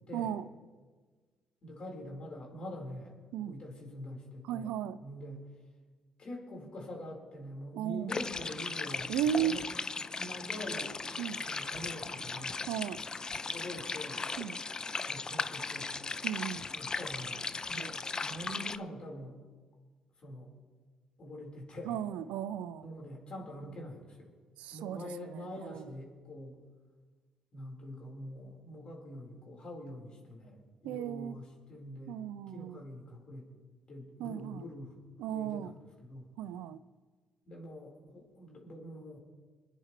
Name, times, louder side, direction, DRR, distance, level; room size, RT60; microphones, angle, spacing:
voice 1, 0.1-0.4 3.3-3.5 4.5-5.0 7.7-8.1 9.1-9.5 11.2-11.4 12.7-13.0 14.4-14.6 16.2-16.7 17.8-17.9 21.9-22.9 24.6-25.0 25.6-25.8 30.8-31.3 32.1-32.8 34.2-34.7 35.2-35.7 36.4-36.8, right 10 dB, 80° right, 13 dB, 0.5 m, -35 dB
voice 2, 1.6-5.5 6.2-9.6 10.2-10.9 11.4-12.7 13.5-14.2 15.1-16.0 16.7-17.4 17.7-19.4 20.2-20.5 21.2-22.0 22.8-24.3 24.7-26.6 27.5-32.2 32.5-33.5 33.9-36.3 37.5-39.2, left 1 dB, 50° left, -1 dB, 4.7 m, -45 dB
sound 1, 8.1-18.8, left 4 dB, 35° left, 0.6 m, -37 dB
26.0 x 10.0 x 3.3 m, 1.4 s
hypercardioid pair, 50°, 2 cm